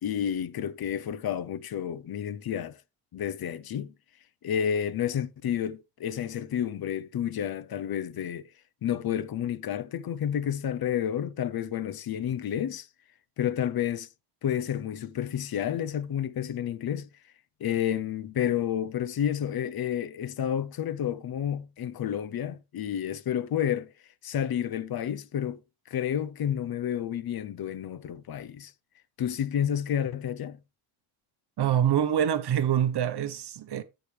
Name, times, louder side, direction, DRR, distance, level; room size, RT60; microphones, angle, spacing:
voice 1, 0.0-2.8 3.1-3.9 4.4-8.5 8.8-12.9 13.4-14.1 14.4-17.1 17.6-23.9 24.2-25.6 25.9-28.7 29.2-30.6, left 9 dB, 45° left, 0.7 m, -30 dB
voice 2, 31.6-33.8, right 10 dB, 50° right, 1.0 m, -25 dB
15.0 x 5.1 x 3.3 m
cardioid pair, 105°, 49 cm